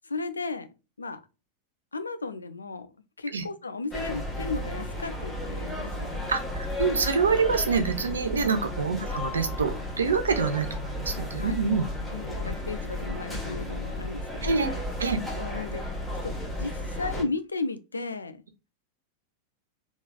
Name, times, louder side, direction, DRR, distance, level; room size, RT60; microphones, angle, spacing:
voice 1, 0.0-0.7 1.0-1.2 1.9-2.9 3.2-6.2 8.3-8.6 11.3-11.6 12.1-14.8 15.3-15.9 16.2-18.4, left 3 dB, 75° left, 0.4 m, -35 dB
sound 1, 3.9-17.2, left 1 dB, 5° left, 1.3 m, -33 dB
voice 2, 6.3-11.9 14.4-14.7 15.0-15.2, right 5 dB, 70° right, 0.7 m, -26 dB
3.6 x 3.1 x 2.3 m
figure-of-eight pair, 90°, 0 cm